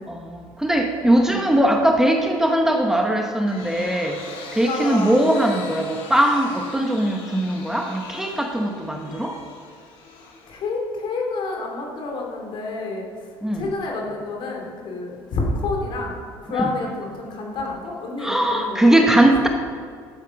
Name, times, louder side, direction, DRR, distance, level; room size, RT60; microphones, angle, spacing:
voice 1, 0.1-4.2 4.5-9.4 13.4-13.7 16.6-16.7 18.2-19.5, right 1 dB, 5° right, 2 dB, 1.1 m, -20 dB
sound 1, 3.1-11.0, left 4 dB, 75° left, 2.3 m, -41 dB
voice 2, 4.6-5.3 10.2-19.3, left 3 dB, 60° left, 0 dB, 3.1 m, -29 dB
12.0 x 7.4 x 5.9 m, 2.1 s
cardioid pair, 110°, 9 cm